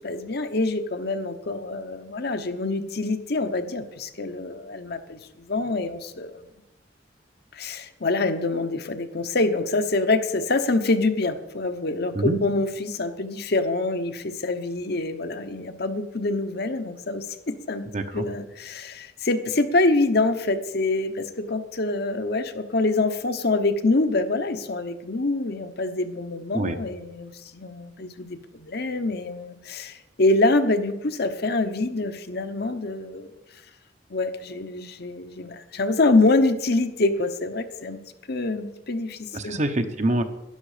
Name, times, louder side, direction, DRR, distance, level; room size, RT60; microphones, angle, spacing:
voice 1, 0.0-6.4 7.5-17.9 18.1-33.3 34.1-38.0 38.3-39.6, left 2 dB, 60° left, 8 dB, 1.0 m, -25 dB
voice 2, 17.9-18.3 26.5-26.8 39.3-40.2, right 1 dB, 40° right, 8 dB, 1.0 m, -25 dB
12.0 x 11.0 x 5.0 m, 0.92 s
head